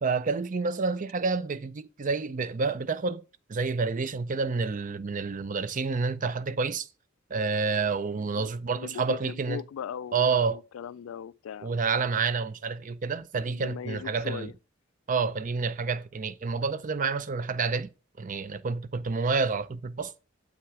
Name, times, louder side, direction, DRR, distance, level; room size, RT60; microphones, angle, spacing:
voice 1, 0.0-3.2 3.5-6.9 7.3-9.6 10.1-10.6 11.6-14.5 15.1-17.9 18.2-20.1, right 4 dB, 40° right, 0.5 m, -29 dB
voice 2, 8.2-11.7 13.4-14.5, left 8 dB, 85° left, 0.3 m, -40 dB
8.0 x 6.0 x 4.8 m
head